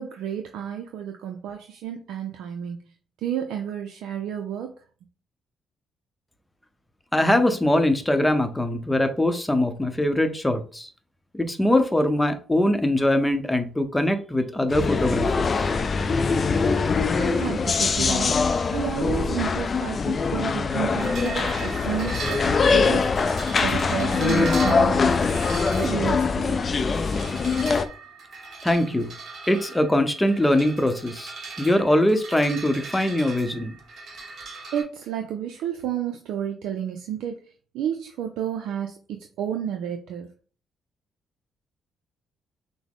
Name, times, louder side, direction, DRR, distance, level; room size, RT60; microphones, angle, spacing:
voice 1, 0.0-2.8 3.2-4.7 17.2-18.3 18.7-23.1 23.6-25.2 25.8-26.7 34.7-40.3, right 9 dB, 85° right, 4 dB, 0.4 m, -31 dB
voice 2, 7.1-10.9 11.3-15.7 28.6-29.1 29.5-33.7, left 1 dB, 10° left, 8 dB, 0.7 m, -22 dB
sound 1, 14.7-27.9, left 4 dB, 40° left, 0.4 m, -23 dB
sound 2, 21.0-34.8, right 3 dB, 65° right, 1.5 m, -38 dB
5.9 x 2.1 x 3.6 m, 0.40 s
cardioid pair, 90°, 0 cm